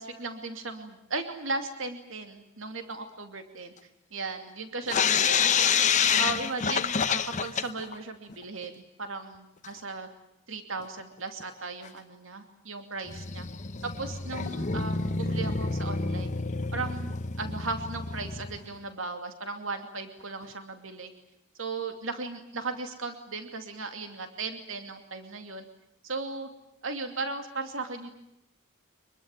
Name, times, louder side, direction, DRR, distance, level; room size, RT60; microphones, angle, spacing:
voice 1, 0.0-3.7 4.1-10.1 10.5-13.5 13.8-16.3 16.7-21.1 21.5-25.6 26.0-26.5 26.8-28.1, right 3 dB, 70° right, 6 dB, 2.7 m, -36 dB
sound 1, 4.9-8.0 8.3-8.4 8.6-8.7 9.6-9.7 10.8-10.9 11.4-11.5 11.9-12.0 13.1-18.7, left 6 dB, 35° left, 0.9 m, -28 dB
25.5 x 22.0 x 9.1 m, 0.83 s
head